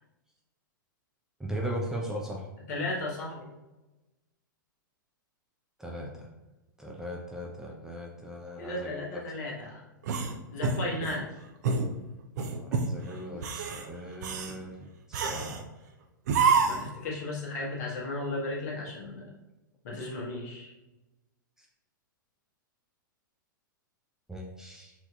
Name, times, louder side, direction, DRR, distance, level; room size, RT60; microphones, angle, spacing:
voice 1, 1.4-2.5 5.8-6.3 6.8-9.2 12.6-15.6 24.3-24.9, equal, 5° right, -2 dB, 0.5 m, -38 dB
voice 2, 2.7-3.5 8.6-9.8 10.5-11.3 16.7-19.3 19.8-20.7, left 2 dB, 55° left, -3 dB, 1.2 m, -35 dB
sound 1, 10.0-11.2 11.6-11.9 12.4-12.9 13.3-13.8 14.2-14.6 15.1-15.6 16.3-16.9, right 5 dB, 55° right, 0.5 m, -27 dB
4.3 x 2.7 x 2.3 m, 1.1 s
figure-of-eight pair, 105°, 11 cm